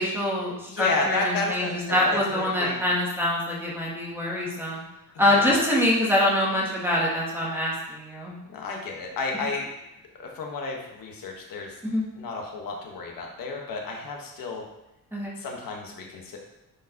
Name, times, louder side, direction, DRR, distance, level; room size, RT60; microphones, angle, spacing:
voice 1, 0.0-4.8 5.2-8.3 11.8-12.0 15.1-15.3, left 1 dB, 5° right, -5 dB, 1.2 m, -25 dB
voice 2, 0.7-2.8 5.3-5.6 8.5-9.7 10.2-11.8 12.2-14.6 15.4-16.4, left 3 dB, 70° left, 1 dB, 1.4 m, -32 dB
10.0 x 4.6 x 2.9 m, 0.92 s
wide cardioid pair, 175°, 36 cm